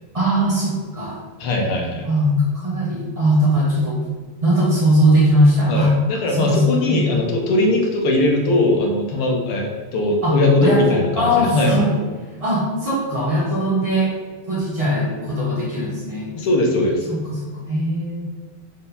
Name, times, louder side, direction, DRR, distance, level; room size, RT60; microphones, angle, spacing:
voice 1, 0.1-1.2 2.0-4.0 4.4-6.0 6.3-7.0 10.2-11.9 12.4-14.2 14.5-16.3 17.1-18.2, equal, 35° right, -8 dB, 0.5 m, -20 dB
voice 2, 1.4-2.1 5.7-11.8 16.3-17.1, left 2 dB, 65° left, 1 dB, 1.5 m, -20 dB
5.3 x 4.1 x 5.5 m, 1.4 s
omnidirectional pair, 3.3 m